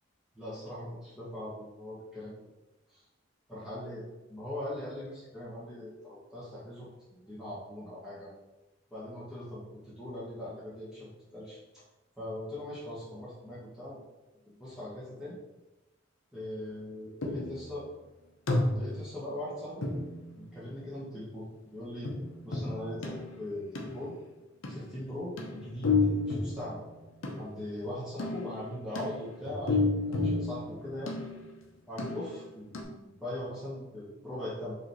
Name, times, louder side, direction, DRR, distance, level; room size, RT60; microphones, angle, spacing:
voice 1, 0.3-2.3 2.9-3.0 3.5-4.0 4.3-6.9 7.3-8.3 8.9-11.6 12.2-14.0 14.5-15.3 16.3-17.9 18.7-19.9 20.4-21.4 21.7-22.1 22.4-24.1 24.7-25.9 26.2-26.8 27.4-29.8 30.1-31.2 31.9-34.8, left 1 dB, 5° right, -10 dB, 1.0 m, -40 dB
sound 1, 17.2-17.7 18.5-19.1 19.8-20.8 22.0-24.1 24.6-24.9 25.4-27.6 28.2-31.6 32.0-32.5 32.7-32.8, left 3 dB, 75° left, 0.7 m, -32 dB
4.8 x 3.3 x 3.0 m, 1.0 s
head